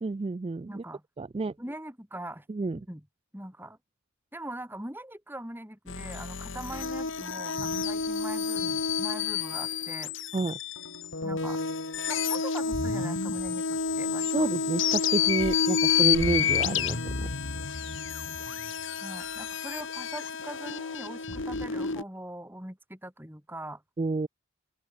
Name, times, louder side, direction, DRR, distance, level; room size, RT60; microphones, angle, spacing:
voice 1, 0.0-0.8 1.2-1.5 2.5-2.8 10.3-10.6 14.3-17.3 24.0-24.3, right 3 dB, 25° right, 0.3 m, -29 dB
voice 2, 0.7-1.0 1.6-2.5 2.9-3.1 3.3-3.8 4.3-10.1 11.2-11.6 12.1-14.5 19.0-23.8, right 1 dB, 10° right, 3.6 m, -41 dB
sound 1, 5.9-22.0, left 6 dB, 60° left, 1.6 m, -29 dB
open air
head